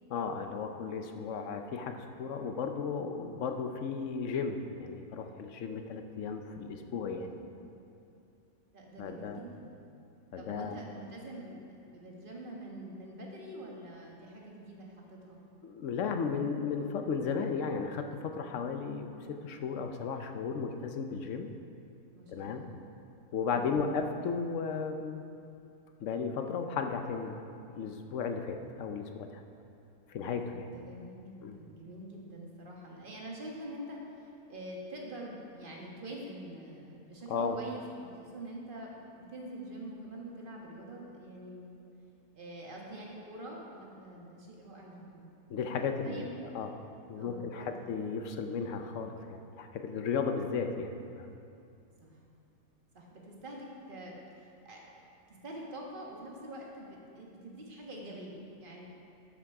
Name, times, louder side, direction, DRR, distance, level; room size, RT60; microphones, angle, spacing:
voice 1, 0.1-7.3 9.0-9.4 10.3-10.8 15.6-21.5 22.3-22.6 23.3-25.2 26.0-27.4 27.8-29.3 30.1-30.7 31.4-31.6 37.3-37.6 45.5-46.3 46.5-46.7 47.1-51.3, left 5 dB, 65° left, 6 dB, 0.9 m, -35 dB
voice 2, 6.6-7.6 8.7-9.7 10.4-15.4 22.1-22.7 23.5-23.8 30.6-37.8 38.1-41.7 42.3-45.3 46.0-46.4 47.2-47.7 52.0-52.2 52.9-54.8 55.3-58.9, right 1 dB, 35° right, -2 dB, 1.5 m, -45 dB
12.5 x 6.1 x 4.8 m, 2.6 s
omnidirectional pair, 1.6 m